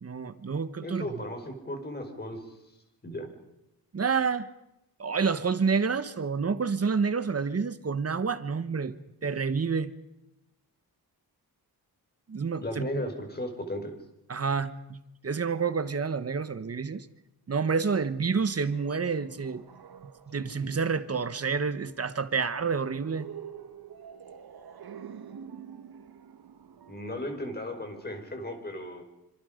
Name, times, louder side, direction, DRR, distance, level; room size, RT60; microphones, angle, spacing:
voice 1, 0.0-1.1 3.9-4.5 5.0-8.9 9.2-9.9 12.3-12.9 14.3-17.1 17.5-19.6 20.3-23.3, right 5 dB, 40° right, 12 dB, 1.3 m, -29 dB
voice 2, 0.8-2.6 3.0-3.3 12.6-14.0 26.9-29.0, left 1 dB, 25° left, 4 dB, 5.0 m, -36 dB
sound 1, 18.4-28.0, right 8 dB, 70° right, 1.6 m, -48 dB
27.0 x 26.0 x 5.2 m, 0.86 s
wide cardioid pair, 130°, 38 cm